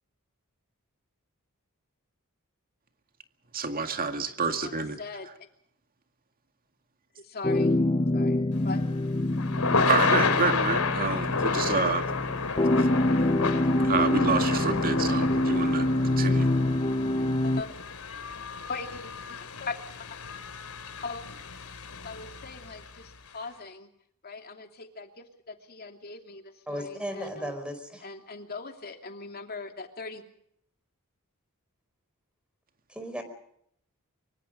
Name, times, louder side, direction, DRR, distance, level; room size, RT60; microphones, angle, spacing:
voice 1, 3.5-5.0 9.9-12.1 12.6-12.9 13.8-16.5, right 4 dB, 40° right, 7 dB, 2.1 m, -28 dB
voice 2, 4.6-5.3 7.2-7.7 8.1-8.4 8.6-8.8 17.4-17.7 18.7-20.2 21.0-21.2 22.0-23.9 24.2-27.5 28.0-30.2, left 4 dB, 45° left, 4 dB, 2.9 m, -40 dB
sound 1, 7.4-17.6, left 1 dB, 25° left, 0.8 m, -26 dB
Thunder / Rain, 8.6-22.9, left 4 dB, 80° left, 3.1 m, -31 dB
voice 3, 26.7-28.0 32.9-33.2, equal, 5° right, 8 dB, 4.7 m, -35 dB
25.0 x 23.5 x 5.2 m, 0.71 s
head